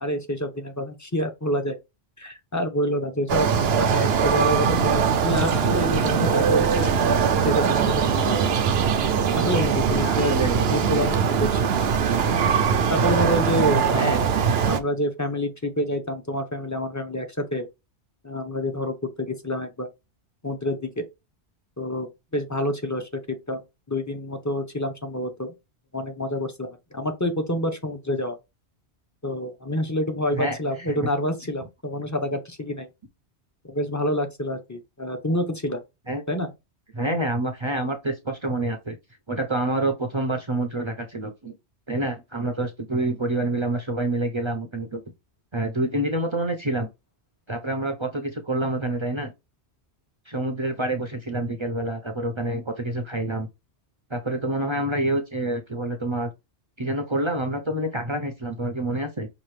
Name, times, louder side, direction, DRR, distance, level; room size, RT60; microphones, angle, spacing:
voice 1, 0.0-1.8 2.2-3.5 3.8-8.5 9.3-10.3 10.7-11.6 12.9-14.3 14.7-17.6 18.2-19.9 20.4-21.0 21.8-23.1 23.5-23.6 23.9-25.5 25.9-28.4 29.2-32.9 33.6-35.8 36.3-36.5, left 1 dB, 15° left, 0.8 m, -27 dB
sound 1, 3.3-14.8, right 6 dB, 70° right, 0.9 m, -21 dB
voice 2, 9.9-10.7 13.9-14.2 30.3-30.6 30.9-31.0 36.1-36.2 36.9-39.0 39.3-41.6 41.9-45.0 45.5-46.9 47.5-49.3 50.3-53.5 54.1-56.3 56.8-59.3, right 1 dB, 30° right, 0.6 m, -27 dB
6.1 x 2.6 x 3.2 m
omnidirectional pair, 1.1 m